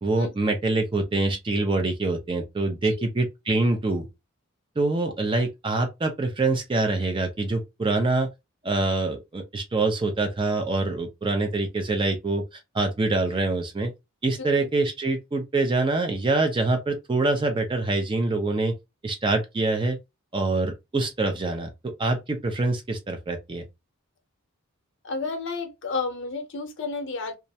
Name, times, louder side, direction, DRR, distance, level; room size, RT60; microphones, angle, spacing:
voice 1, 0.0-4.1 4.8-8.3 8.6-12.4 12.7-13.9 14.2-18.7 19.0-20.0 20.3-23.6, right 2 dB, 25° right, 0.4 m, -25 dB
voice 2, 25.0-27.3, left 4 dB, 60° left, 0.7 m, -31 dB
2.3 x 2.1 x 2.6 m
head